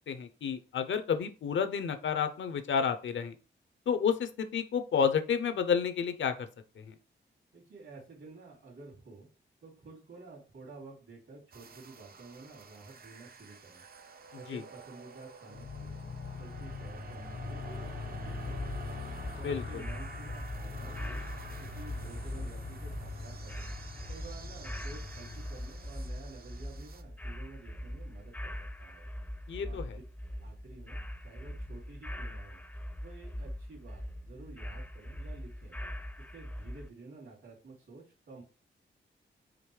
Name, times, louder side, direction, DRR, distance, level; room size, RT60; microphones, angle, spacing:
voice 1, 0.1-3.3 3.9-6.5 6.8-6.9 14.5-14.6 19.4-19.8 29.5-30.0, left 7 dB, 70° left, 9 dB, 0.6 m, -30 dB
voice 2, 7.5-9.3 9.6-13.8 14.3-16.0 16.4-18.8 19.3-21.3 21.6-23.8 24.1-29.1 29.6-30.0 30.4-32.6 33.0-35.8 36.2-38.4, right 3 dB, 75° right, -3 dB, 2.6 m, -51 dB
sound 1, 11.5-27.0, right 5 dB, 50° right, 0.5 m, -51 dB
Motorcycle, 15.5-26.1, left 4 dB, 90° left, 1.4 m, -43 dB
sound 2, 18.2-36.9, equal, 10° left, 0.5 m, -42 dB
5.1 x 3.0 x 3.2 m, 0.34 s
cardioid pair, 90°, 20 cm